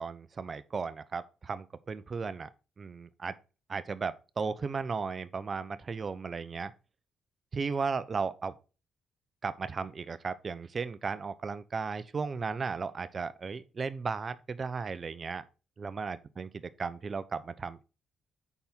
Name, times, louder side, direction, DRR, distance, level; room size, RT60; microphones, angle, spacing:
voice 1, 0.0-2.5 2.8-3.4 3.7-6.7 7.5-8.5 9.4-15.4 15.8-16.5 16.8-17.8, right 5 dB, 40° right, 0.8 m, -35 dB
10.0 x 4.4 x 3.8 m
cardioid pair, 90°, 0 cm